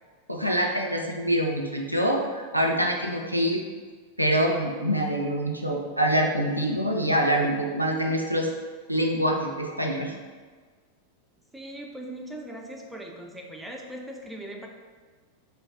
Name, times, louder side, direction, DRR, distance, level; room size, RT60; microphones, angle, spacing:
voice 1, 0.3-3.6 4.2-8.5 8.9-10.1, equal, 90° right, 1 dB, 0.3 m, -25 dB
voice 2, 11.5-14.7, right 1 dB, 5° right, 0 dB, 0.3 m, -39 dB
2.5 x 2.3 x 3.3 m, 1.5 s
figure-of-eight pair, 90°, 0 cm